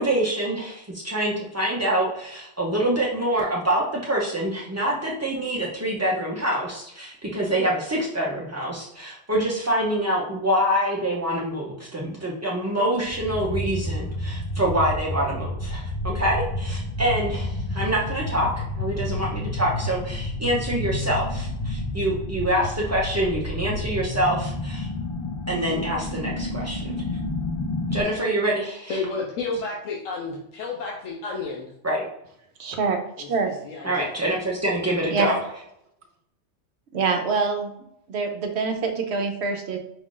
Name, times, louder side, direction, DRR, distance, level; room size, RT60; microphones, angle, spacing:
voice 1, 0.0-18.5 18.8-24.9 25.5-26.9 27.9-29.0 31.8-32.0 33.8-35.4, right 1 dB, 25° right, -4 dB, 0.3 m, -25 dB
sound 1, 13.0-28.0, left 1 dB, 35° left, 0.6 m, -30 dB
voice 2, 28.9-31.7 33.2-34.1, left 3 dB, 90° left, -2 dB, 1.1 m, -31 dB
voice 3, 32.6-33.0 33.3-33.5 35.1-35.3 36.9-37.7 38.1-39.8, right 4 dB, 65° right, 5 dB, 0.9 m, -25 dB
5.0 x 2.4 x 3.7 m, 0.79 s
omnidirectional pair, 1.3 m